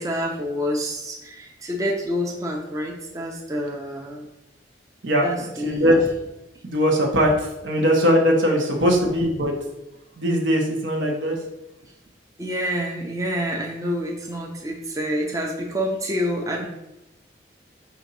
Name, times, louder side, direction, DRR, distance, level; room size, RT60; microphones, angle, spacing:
voice 1, 0.0-4.3 5.2-6.0 11.8-11.9 12.4-16.7, equal, 20° right, 0 dB, 0.5 m, -27 dB
voice 2, 5.6-6.1 6.6-9.5 10.2-11.3, equal, 85° right, 0 dB, 1.0 m, -20 dB
5.0 x 2.6 x 4.1 m, 0.95 s
head